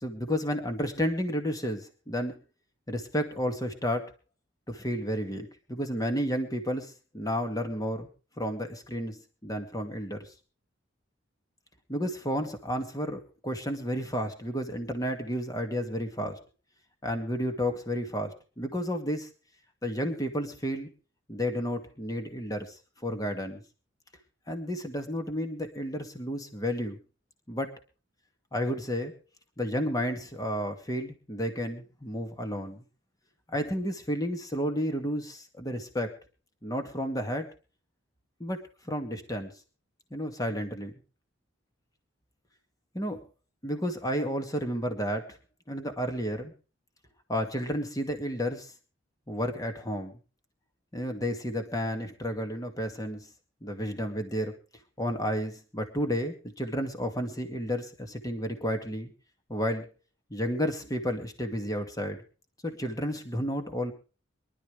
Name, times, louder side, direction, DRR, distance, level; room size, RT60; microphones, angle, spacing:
voice 1, 0.0-2.4 2.9-4.1 4.7-8.1 8.4-10.3 11.9-16.4 17.0-19.3 19.8-20.9 21.3-23.6 24.5-27.0 27.5-27.7 28.5-29.1 29.6-32.8 33.5-36.1 36.6-37.5 38.4-38.6 38.8-39.5 40.1-40.9 42.9-43.2 43.6-45.3 45.7-46.5 47.3-48.7 49.3-50.1 50.9-53.3 53.6-54.5 55.0-59.1 59.5-59.9 60.3-62.2 62.6-63.9, equal, 20° left, 6 dB, 2.2 m, -31 dB
24.0 x 12.0 x 3.4 m, 0.35 s
head